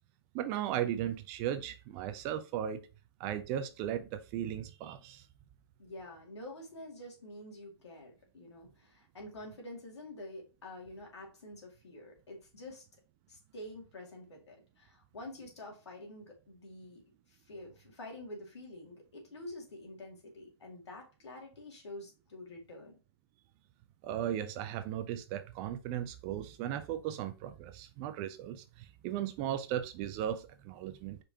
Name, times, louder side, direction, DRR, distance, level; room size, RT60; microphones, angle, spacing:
voice 1, 0.3-2.9 3.2-5.2 24.0-31.2, right 10 dB, 25° right, 0.3 m, -36 dB
voice 2, 5.8-12.8 13.3-17.0 17.3-22.9, left 1 dB, 80° left, 2.2 m, -48 dB
5.1 x 3.4 x 2.8 m
hypercardioid pair, 145°, 14 cm